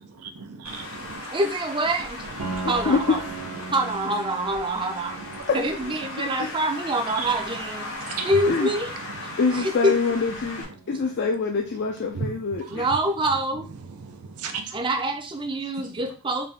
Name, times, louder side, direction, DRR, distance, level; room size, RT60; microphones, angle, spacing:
voice 1, 0.4-1.3 2.2-2.7 3.5-3.7 5.2-5.4 6.4-6.5 7.2-7.3 8.0-8.4 9.1-9.4 12.1-12.9 13.9-14.8, right 5 dB, 85° right, 0.6 m, -36 dB
Traffic noise roadway noise, 0.6-10.6, left 2 dB, 80° left, 2.1 m, -37 dB
voice 2, 1.3-2.2 2.7-3.2 3.7-5.2 5.5-7.9 8.2-8.9 9.2-10.0 10.9-11.0 12.7-13.6 14.7-16.5, right 1 dB, 20° right, 0.5 m, -26 dB
Piano, 2.4-12.0, right 4 dB, 65° right, 0.9 m, -40 dB
voice 3, 2.6-3.2 5.5-5.9 6.4-6.6 8.5-8.7 9.4-12.8, left 4 dB, 50° left, 0.4 m, -25 dB
4.0 x 2.7 x 3.4 m
head